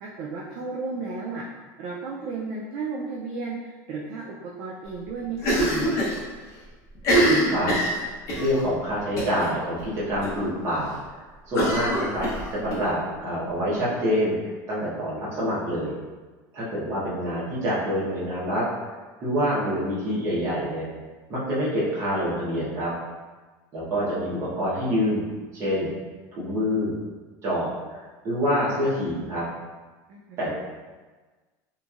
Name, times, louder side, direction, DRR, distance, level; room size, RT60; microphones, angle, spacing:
voice 1, 0.0-1.4 1.8-5.8 30.1-30.5, right 4 dB, 45° right, -3 dB, 0.3 m, -34 dB
Cough, 5.4-6.2 6.5-6.6 7.0-8.5 9.2-9.5 9.8-9.9 10.2-10.3 11.5-12.8, right 1 dB, 35° left, 0.8 m, -23 dB
voice 2, 8.4-10.9 11.5-15.9 16.5-18.6 19.2-20.9 21.3-22.9 23.7-25.2 25.5-25.9 26.4-26.9 27.4-29.4 30.4-30.5, equal, 30° right, -8 dB, 1.0 m, -26 dB
2.9 x 2.6 x 2.4 m, 1.3 s
cardioid pair, 170°, 9 cm